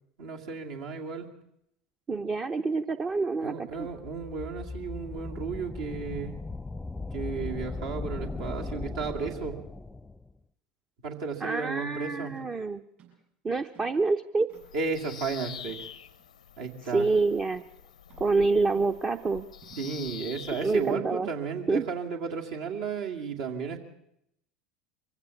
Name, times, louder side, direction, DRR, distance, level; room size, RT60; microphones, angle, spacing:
voice 1, 0.2-1.3 3.4-6.4 7.1-9.6 11.0-12.4 14.7-15.9 16.6-17.1 19.8-23.8, right 5 dB, 65° right, 2 dB, 2.2 m, -34 dB
voice 2, 2.1-3.9 11.4-12.8 13.4-14.5 16.9-17.6 18.2-19.5 20.6-21.3 21.7-21.9, right 3 dB, 25° right, 8 dB, 0.7 m, -27 dB
sound 1, 3.8-10.3, left 3 dB, 10° left, 0.7 m, -38 dB
sound 2, 12.4-12.5 13.0-13.2 13.6-14.0 14.5-14.9 15.6-16.3 17.1-17.4 18.1-19.0 19.6-20.1, right 8 dB, 50° right, 7.4 m, -56 dB
Bird vocalization bird call bird song, 14.5-20.9, left 9 dB, 80° left, 0.7 m, -46 dB
24.0 x 15.5 x 7.1 m, 0.78 s
figure-of-eight pair, 75°, 4 cm